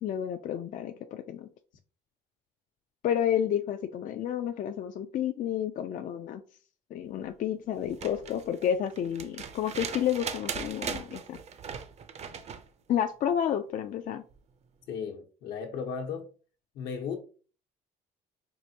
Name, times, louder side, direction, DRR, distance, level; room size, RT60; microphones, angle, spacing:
voice 1, 0.0-1.5 3.0-6.4 6.9-11.4 12.9-14.2, left 9 dB, 50° left, 0.4 m, -30 dB
sound 1, 7.8-12.7 14.3-14.4, right 6 dB, 40° right, 0.5 m, -39 dB
voice 2, 14.9-16.3 16.7-17.1, left 6 dB, 80° left, 1.0 m, -35 dB
4.7 x 2.5 x 2.8 m
cardioid pair, 110°, 17 cm